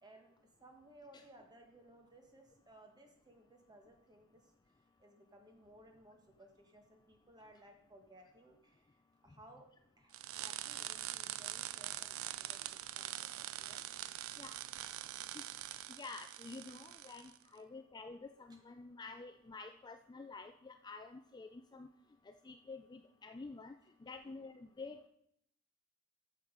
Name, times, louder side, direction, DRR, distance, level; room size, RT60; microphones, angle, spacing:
voice 1, 0.0-0.3 0.6-9.6 10.0-12.6 13.0-14.0, right 1 dB, 20° right, 3 dB, 1.4 m, -61 dB
sound 1, 10.1-17.4, right 13 dB, 65° right, 0.4 m, -44 dB
voice 2, 15.9-21.9 22.3-23.7 24.0-25.1, left 3 dB, 20° left, 7 dB, 0.3 m, -49 dB
8.0 x 7.1 x 5.0 m, 0.73 s
head